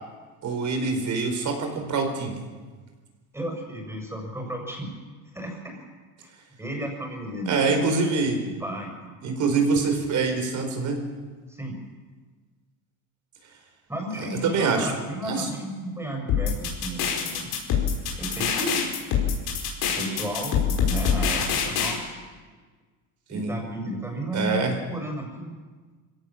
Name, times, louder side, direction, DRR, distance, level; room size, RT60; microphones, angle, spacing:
voice 1, 0.4-2.5 7.5-8.4 9.2-11.1 14.2-14.9 15.2-15.5 23.3-23.6 24.3-24.7, right 4 dB, 50° right, 5 dB, 4.6 m, -25 dB
voice 2, 3.3-5.0 5.3-5.8 6.2-6.3 6.6-7.7 8.6-9.1 11.5-11.7 13.9-17.6 18.2-18.8 19.9-22.2 23.3-24.6 24.9-25.6, right 1 dB, 5° right, 1 dB, 6.4 m, -33 dB
sound 1, 16.3-21.9, left 7 dB, 75° left, 5.3 m, -24 dB
24.0 x 17.0 x 7.5 m, 1.4 s
cardioid pair, 130°, 38 cm